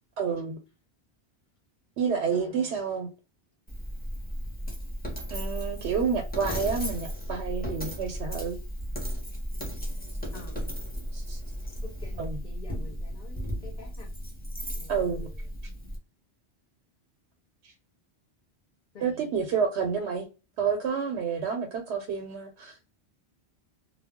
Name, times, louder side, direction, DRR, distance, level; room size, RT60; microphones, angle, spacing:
voice 1, 0.2-0.6 2.0-3.1 5.3-8.6 11.1-11.4 12.2-12.4 14.9-15.3 19.0-20.2 20.6-22.9, right 6 dB, 85° right, 0.9 m, -29 dB
voice 2, 2.3-2.8 10.3-10.6 11.8-14.1 14.7-15.3 18.9-19.5, left 2 dB, 45° left, 0.7 m, -48 dB
Coin (dropping), 3.7-16.0, equal, 10° left, 0.6 m, -35 dB
2.2 x 2.0 x 3.5 m
omnidirectional pair, 1.1 m